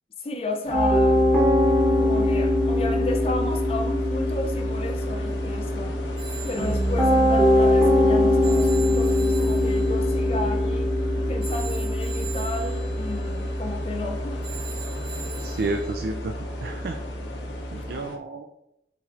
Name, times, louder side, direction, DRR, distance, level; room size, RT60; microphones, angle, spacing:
voice 1, 0.2-1.3 2.0-6.0 6.5-10.9 11.3-14.4, left 2 dB, 35° left, 0.4 m, -32 dB
sound 1, 0.6-18.2, left 2 dB, 90° left, 0.7 m, -39 dB
Piano, 0.7-17.8, left 1 dB, 5° right, 0.9 m, -23 dB
Telephone, 6.2-15.9, right 6 dB, 80° right, 1.5 m, -42 dB
voice 2, 15.4-17.0 17.7-18.5, right 3 dB, 60° right, 0.3 m, -31 dB
4.5 x 4.1 x 2.4 m
head